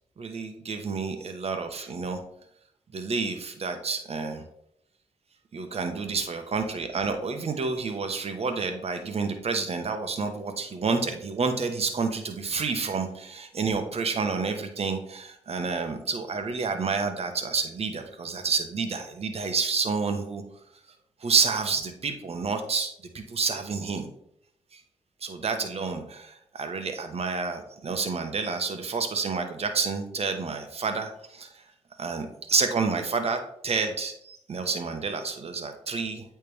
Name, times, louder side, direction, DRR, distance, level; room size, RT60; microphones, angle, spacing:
voice 1, 0.2-2.2 2.9-4.4 5.5-20.4 21.2-24.1 24.7-24.8 25.2-31.6 32.0-36.2, right 4 dB, 55° right, 6 dB, 1.0 m, -29 dB
8.5 x 3.3 x 3.3 m, 0.71 s
cardioid pair, 55°, 13 cm